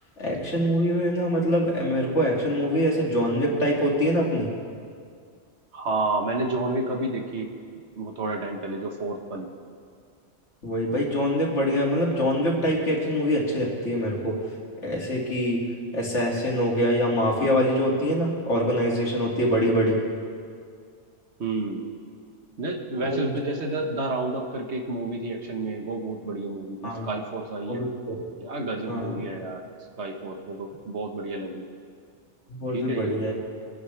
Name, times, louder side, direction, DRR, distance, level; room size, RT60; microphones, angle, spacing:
voice 1, 0.2-4.5 10.6-14.3 14.8-15.6 15.9-20.0 23.0-23.4 26.8-27.1 27.7-28.2 28.9-29.2 32.6-33.3, equal, 80° left, -3 dB, 2.7 m, -24 dB
voice 2, 5.7-7.5 7.9-9.5 21.4-21.9 22.6-27.8 28.4-29.6 30.0-31.7 32.7-33.3, right 2 dB, 70° right, 3 dB, 1.6 m, -30 dB
24.0 x 10.5 x 3.4 m, 2.2 s
omnidirectional pair, 1.2 m